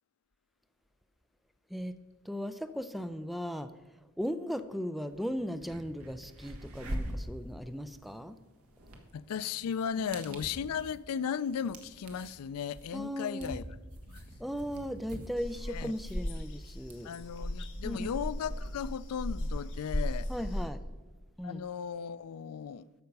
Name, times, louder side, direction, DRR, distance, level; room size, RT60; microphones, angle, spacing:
voice 1, 2.3-3.7 4.2-8.4 10.3-10.4 12.9-13.6 14.4-17.1 17.8-18.1 20.3-20.8 21.4-21.6, equal, ahead, 0.3 m, -37 dB
sound 1, 5.1-5.2 5.5-18.9, equal, 75° right, 1.5 m, -45 dB
voice 2, 9.1-13.6 14.1-14.2 15.7-15.9 17.0-20.3 21.4-22.9, left 7 dB, 75° left, 0.4 m, -36 dB
sound 2, 15.4-20.6, left 1 dB, 55° left, 1.6 m, -36 dB
11.5 x 6.8 x 5.3 m
head